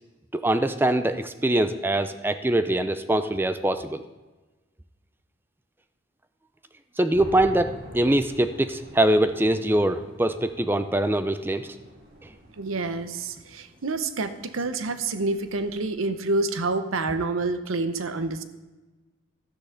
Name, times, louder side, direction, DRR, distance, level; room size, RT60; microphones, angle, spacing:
voice 1, 0.3-4.0 7.0-11.8 12.2-12.3, right 1 dB, 10° right, 10 dB, 0.4 m, -23 dB
sound 1, 7.1-15.8, equal, 45° right, 2.4 m, -46 dB
voice 2, 12.6-18.4, right 3 dB, 80° right, 10 dB, 0.8 m, -28 dB
12.0 x 9.8 x 3.8 m, 1.2 s
head